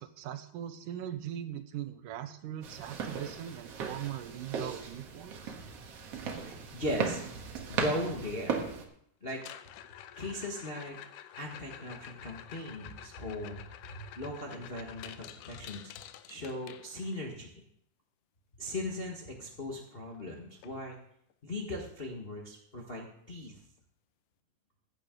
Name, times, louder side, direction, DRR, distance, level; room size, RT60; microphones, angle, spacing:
voice 1, 0.0-5.6, right 10 dB, 90° right, 10 dB, 2.4 m, -40 dB
foley footsteps walking in room indoors, 2.6-8.8, right 6 dB, 60° right, 2.1 m, -37 dB
voice 2, 6.4-7.2 7.7-8.6 9.2-9.4 10.2-11.0 11.3-15.8 16.3-17.5 18.6-21.0 21.4-23.6, left 1 dB, 35° left, -1 dB, 0.9 m, -38 dB
sound 1, 9.3-17.3 19.5-19.6 19.9-20.2 20.6-20.7 21.3-21.4 23.3-23.4, left 12 dB, 90° left, 2.2 m, -49 dB
15.0 x 10.0 x 3.8 m, 0.71 s
omnidirectional pair, 3.6 m